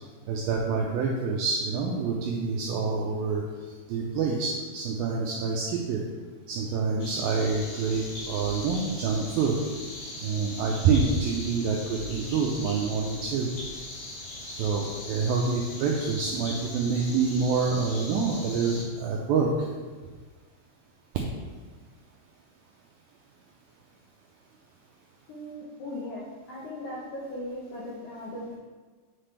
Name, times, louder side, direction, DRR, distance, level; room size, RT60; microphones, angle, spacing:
voice 1, 0.3-3.4 3.9-6.0 6.5-9.6 10.2-13.5 14.5-19.7, right 5 dB, 90° right, -1 dB, 2.0 m, -27 dB
sound 1, 7.0-18.8, left 1 dB, 60° left, 3.1 m, -40 dB
voice 2, 25.3-28.6, left 1 dB, 75° left, -5 dB, 1.7 m, -38 dB
8.2 x 5.9 x 3.3 m, 1.4 s
omnidirectional pair, 4.9 m